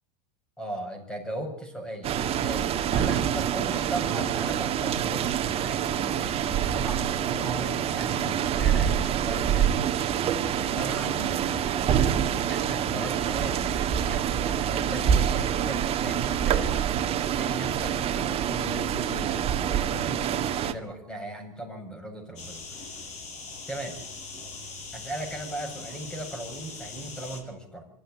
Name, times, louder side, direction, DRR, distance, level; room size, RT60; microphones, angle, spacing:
voice 1, 0.6-22.9 23.7-24.0 24.9-27.9, right 1 dB, 5° left, 4 dB, 7.1 m, -38 dB
sound 1, 2.0-20.7, right 9 dB, 30° right, 1.9 m, -26 dB
sound 2, 22.4-27.4, left 4 dB, 40° left, 7.9 m, -41 dB
25.5 x 14.0 x 9.9 m, 0.74 s
supercardioid pair, 130°, 19 cm